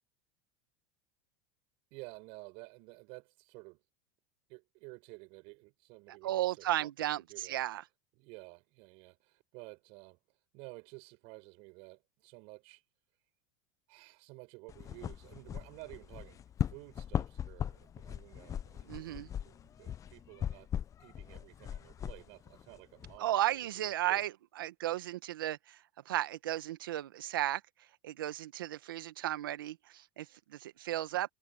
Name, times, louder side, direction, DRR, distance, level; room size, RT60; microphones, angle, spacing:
voice 1, 1.9-3.8 4.5-6.9 7.2-7.6 8.2-10.2 10.5-12.8 13.9-16.4 16.7-20.7 21.0-24.2, right 28 dB, 60° right, 7.1 m, -52 dB
voice 2, 6.1-7.8 18.9-19.3 23.2-25.8 26.1-27.6 28.0-31.3, right 13 dB, 85° right, 1.8 m, -34 dB
sound 1, 14.7-23.2, left 9 dB, 30° left, 0.8 m, -39 dB
hypercardioid pair, 105°, 11 cm